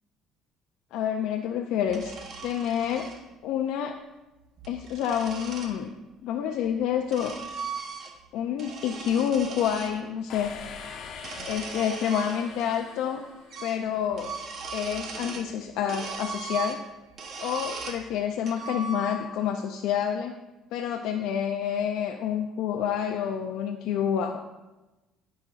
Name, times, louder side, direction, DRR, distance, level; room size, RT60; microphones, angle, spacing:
voice 1, 0.9-2.1 2.4-3.1 3.4-3.9 4.7-5.9 6.2-7.3 8.3-10.5 11.5-13.2 13.6-14.3 14.7-16.8 17.4-20.3 20.7-24.4, left 9 dB, 80° left, 3 dB, 0.4 m, -28 dB
sound 1, 1.9-3.2 4.4-5.8 6.7-8.3 8.6-9.9 11.1-12.8 13.1-13.2 13.5-13.8 14.1-15.5 15.9-18.0 18.5-19.4, right 4 dB, 50° right, 0.9 m, -38 dB
sound 2, 10.3-14.1, left 5 dB, 60° left, 1.0 m, -43 dB
12.0 x 5.1 x 2.5 m, 1.1 s
cardioid pair, 115°, 0 cm